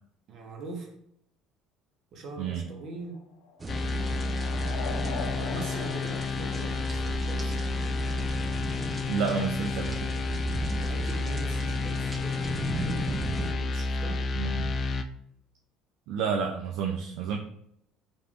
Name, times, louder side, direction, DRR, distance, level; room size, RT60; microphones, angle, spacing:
voice 1, 0.3-0.9 2.1-3.2 5.3-7.6 10.7-14.3, right 2 dB, 55° right, 2 dB, 1.1 m, -42 dB
sound 1, 2.7-7.4, left 5 dB, 85° left, 0.6 m, -42 dB
sound 2, 3.6-13.5, right 3 dB, 25° right, 0.5 m, -37 dB
sound 3, 3.7-15.0, left 3 dB, 40° left, 0.4 m, -30 dB
voice 2, 9.1-10.1 14.4-14.7 16.1-17.4, right 6 dB, 75° right, 1 dB, 0.5 m, -30 dB
4.4 x 3.4 x 2.5 m, 0.71 s
supercardioid pair, 85°, 0 cm